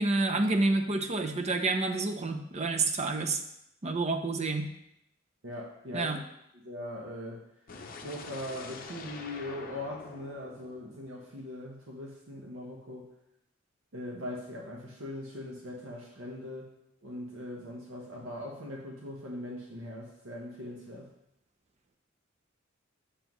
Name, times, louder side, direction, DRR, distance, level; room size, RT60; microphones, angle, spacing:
voice 1, 0.0-3.4 3.8-4.7 5.9-6.2, right 3 dB, 35° right, 6 dB, 0.6 m, -28 dB
voice 2, 5.4-6.1 6.5-7.4 8.0-13.1 13.9-16.7 17.0-21.1, left 1 dB, 75° right, -2 dB, 1.1 m, -40 dB
sound 1, 7.7-11.7, left 4 dB, 45° left, 0.7 m, -46 dB
7.3 x 6.6 x 3.1 m, 0.79 s
head